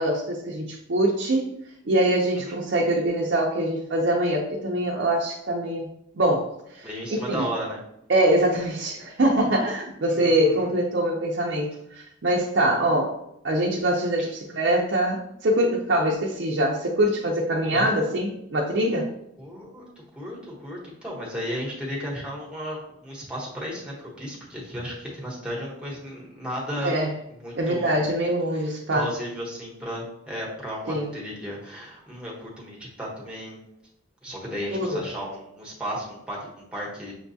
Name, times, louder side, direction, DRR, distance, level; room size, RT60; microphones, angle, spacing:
voice 1, 0.0-1.5 1.8-5.9 6.1-7.4 8.1-13.2 13.4-19.1 26.8-27.1 27.5-29.1 30.9-31.1 34.7-35.1, right 1 dB, 60° right, -2 dB, 0.5 m, -24 dB
voice 2, 6.8-7.8 10.1-10.7 14.2-14.3 17.6-17.9 19.4-19.9 20.1-26.9 27.4-28.0 28.6-33.6 34.2-37.1, equal, 5° right, -5 dB, 1.0 m, -34 dB
6.3 x 2.3 x 2.7 m, 0.78 s
head